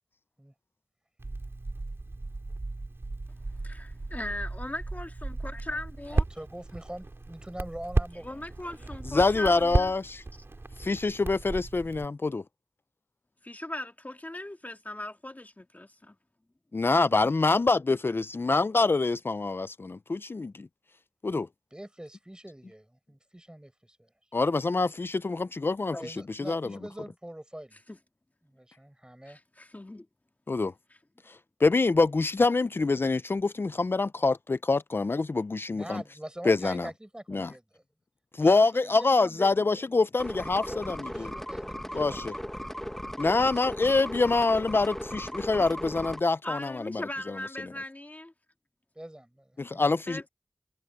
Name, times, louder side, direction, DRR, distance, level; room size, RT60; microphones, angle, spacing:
Crackle, 1.2-12.0, right 2 dB, 80° right, 2.6 m, -34 dB
voice 1, 3.6-6.2 8.2-9.9 13.4-16.2 25.9-26.0 27.9-28.0 29.3-30.1 46.4-48.3 50.1-50.3, left 1 dB, 40° left, 1.9 m, -39 dB
voice 2, 6.1-9.0 21.7-24.1 26.0-27.8 28.4-29.4 35.7-37.8 38.4-39.8 40.7-42.4 48.9-49.6, right 1 dB, 20° right, 4.4 m, -43 dB
voice 3, 9.1-10.2 10.8-12.4 16.7-20.7 21.2-21.5 24.3-26.0 26.5-26.8 30.5-30.7 31.6-36.0 36.5-36.9 37.3-37.5 38.3-41.3 41.9-42.3 43.2-47.0 49.6-50.3, left 3 dB, 65° left, 0.3 m, -25 dB
sound 1, 40.2-46.2, equal, 10° left, 1.2 m, -37 dB
wide cardioid pair, 50°, 4 cm